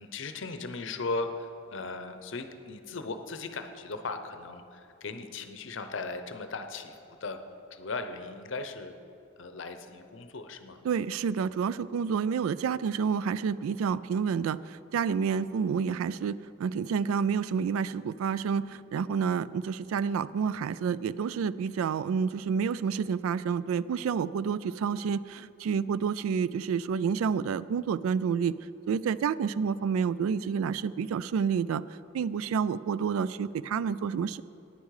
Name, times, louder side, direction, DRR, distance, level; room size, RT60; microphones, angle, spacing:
voice 1, 0.0-7.4 7.7-8.9 9.4-10.8, left 3 dB, 65° left, 8 dB, 0.7 m, -37 dB
voice 2, 10.8-28.5 28.9-31.8 32.1-34.4, right 6 dB, 85° right, 17 dB, 0.3 m, -29 dB
10.0 x 9.6 x 4.8 m, 2.7 s
head